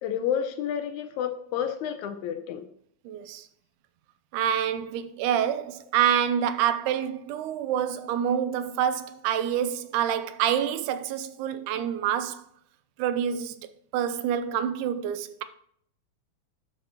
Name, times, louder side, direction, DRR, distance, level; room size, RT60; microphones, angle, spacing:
voice 1, 0.0-2.7, left 9 dB, 80° left, 1.9 m, -30 dB
voice 2, 3.1-3.5 4.3-12.4 13.0-13.6 13.9-15.4, right 9 dB, 85° right, 2.1 m, -27 dB
11.0 x 5.2 x 2.9 m
omnidirectional pair, 3.6 m